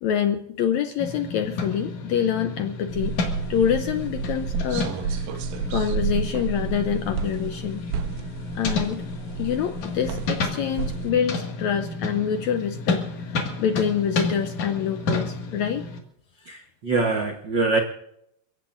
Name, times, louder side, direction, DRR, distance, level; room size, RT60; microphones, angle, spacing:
voice 1, 0.0-3.2 3.5-5.2 5.7-7.8 8.5-9.0 9.4-15.9, left 8 dB, 80° left, 8 dB, 1.7 m, -26 dB
sound 1, 1.0-16.0, left 3 dB, 60° left, 3.2 m, -31 dB
sound 2, 2.9-11.1, right 6 dB, 90° right, 2.6 m, -31 dB
voice 2, 16.4-17.8, right 3 dB, 75° right, 4 dB, 1.0 m, -24 dB
29.0 x 16.5 x 2.6 m, 0.74 s
omnidirectional pair, 3.9 m